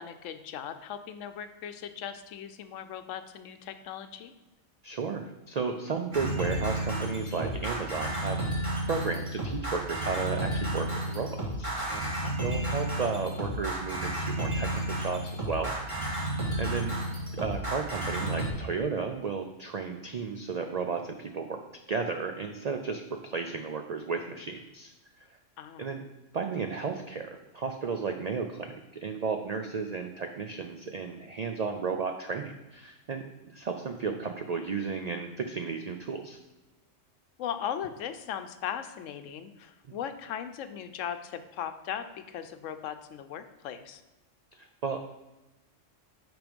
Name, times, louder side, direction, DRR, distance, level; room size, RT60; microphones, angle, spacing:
voice 1, 0.0-4.3 12.2-12.5 16.7-16.8 25.6-25.9 37.4-44.0, left 9 dB, 80° left, 10 dB, 1.0 m, -38 dB
voice 2, 4.8-8.4 8.8-12.1 12.4-17.0 17.3-21.6 21.9-24.9 25.8-26.0 26.3-33.2 33.5-36.4 39.9-40.0 44.5-45.0, right 5 dB, 75° right, 5 dB, 0.3 m, -34 dB
sound 1, 6.1-18.5, right 1 dB, 25° right, 1.9 m, -32 dB
6.0 x 5.2 x 5.2 m, 1.1 s
omnidirectional pair, 1.3 m